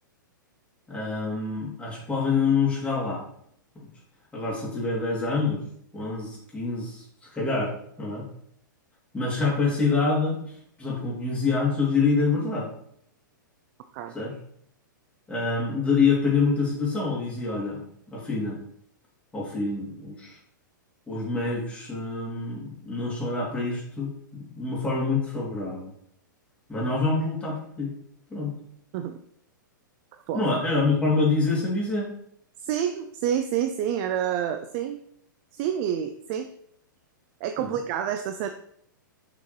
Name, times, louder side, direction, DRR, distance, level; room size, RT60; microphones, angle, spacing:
voice 1, 0.9-3.2 3.7-3.9 4.3-5.6 5.9-7.0 7.3-7.7 8.0-8.2 9.1-10.4 10.8-12.7 14.1-14.3 15.3-17.8 18.1-18.6 19.3-20.4 21.1-25.9 26.7-27.9 28.3-28.6 30.3-32.1 37.6-37.7, left 4 dB, 10° left, -5 dB, 3.0 m, -26 dB
voice 2, 32.6-35.0 35.5-36.5 37.4-38.5, right 9 dB, 40° right, 7 dB, 0.5 m, -28 dB
6.8 x 5.6 x 3.3 m, 0.68 s
figure-of-eight pair, 110°, 11 cm